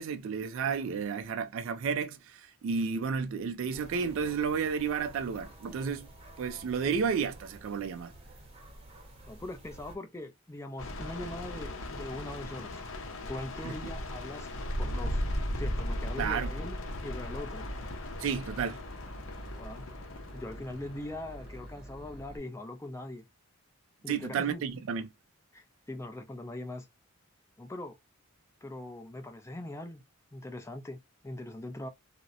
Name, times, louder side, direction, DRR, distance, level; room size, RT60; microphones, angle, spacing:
voice 1, 0.0-6.1 6.4-8.1 13.6-13.7 16.2-16.5 18.2-18.8 24.1-25.1, right 6 dB, 65° right, 0.3 m, -32 dB
sound 1, 3.7-10.0, right 1 dB, 30° right, 0.7 m, -51 dB
voice 2, 9.3-12.8 13.3-14.5 14.8-15.2 15.6-16.8 17.0-17.7 19.6-19.8 20.3-23.2 24.0-24.8 25.5-26.9 27.6-28.0 28.6-30.0 30.3-31.0 31.2-31.9, left 1 dB, 15° left, 0.4 m, -41 dB
sound 2, 10.8-21.7, left 1 dB, 65° left, 0.6 m, -37 dB
Boat Water vehicle / Engine, 16.8-22.4, equal, 5° right, 1.1 m, -48 dB
2.7 x 2.0 x 2.3 m
head